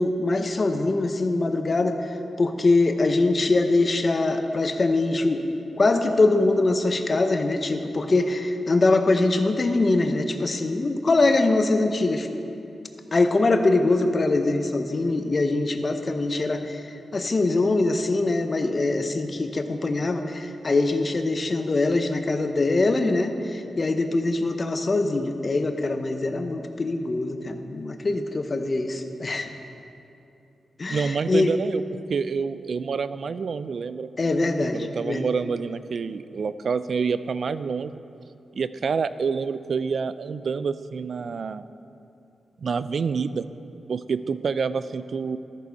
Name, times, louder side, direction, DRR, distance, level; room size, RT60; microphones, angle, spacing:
voice 1, 0.0-5.4 5.8-12.3 13.1-29.5 30.8-31.5 34.2-35.2, left 2 dB, 40° left, 6 dB, 0.8 m, -23 dB
voice 2, 30.9-31.8 32.1-34.1 34.7-38.0 38.5-41.6 42.6-43.5 43.9-45.4, right 5 dB, 65° right, 14 dB, 0.3 m, -27 dB
13.0 x 6.8 x 4.7 m, 2.7 s
cardioid pair, 70°, 0 cm